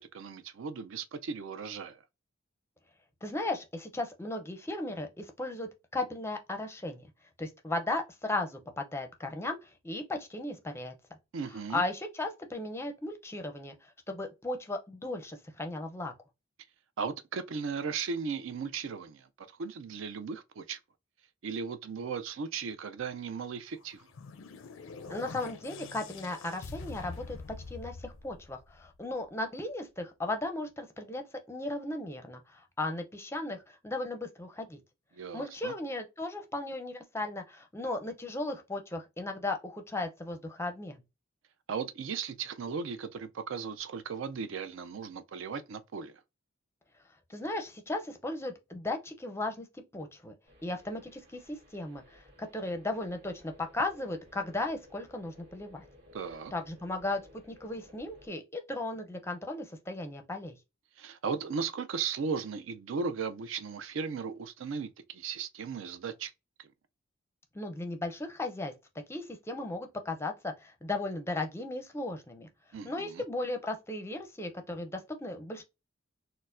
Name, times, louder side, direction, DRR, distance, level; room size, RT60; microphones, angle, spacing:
voice 1, 0.0-2.0 11.3-11.8 17.0-19.3 19.6-20.8 21.4-24.1 35.1-35.7 41.7-46.1 56.1-56.5 61.0-66.3 72.7-73.2, right 5 dB, 65° right, 0.4 m, -36 dB
voice 2, 3.2-7.1 7.4-10.9 11.7-16.1 25.1-27.4 27.7-31.2 31.5-34.8 35.3-41.0 47.3-49.7 49.9-50.3 50.6-55.9 56.5-57.2 57.5-60.5 67.5-68.7 69.1-72.5 72.8-75.6, left 2 dB, 10° left, 0.5 m, -36 dB
sound 1, 23.8-29.1, left 4 dB, 70° left, 0.4 m, -45 dB
sound 2, 50.5-58.3, left 1 dB, 50° right, 1.5 m, -58 dB
4.3 x 2.0 x 2.5 m
head